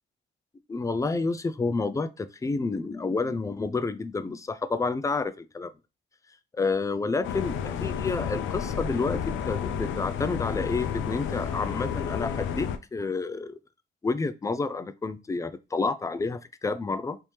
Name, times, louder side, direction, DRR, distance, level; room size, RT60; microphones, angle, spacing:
voice 1, 0.7-5.7 6.5-9.2 9.5-13.6 14.0-17.2, left 3 dB, 15° left, 0.3 m, -29 dB
sound 1, 7.2-12.8, left 8 dB, 75° left, 0.4 m, -31 dB
3.3 x 2.7 x 3.0 m
cardioid pair, 90°, 20 cm